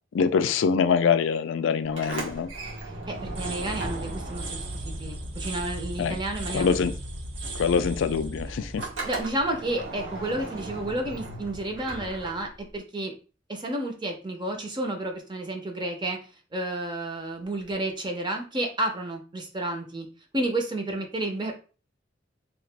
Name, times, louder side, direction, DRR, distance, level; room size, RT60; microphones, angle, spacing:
voice 1, 0.1-2.5 6.0-6.2 6.5-6.9 7.6-8.9, left 6 dB, 75° left, 0.3 m, -24 dB
Sliding door, 1.8-6.1 6.4-12.8, right 2 dB, 85° right, 1.1 m, -38 dB
voice 2, 3.1-6.8 8.8-13.1 13.5-16.2 16.5-20.1 20.3-21.6, right 1 dB, 25° right, 0.6 m, -31 dB
sound 1, 3.1-10.0, right 1 dB, 70° right, 0.7 m, -36 dB
2.9 x 2.4 x 3.3 m
head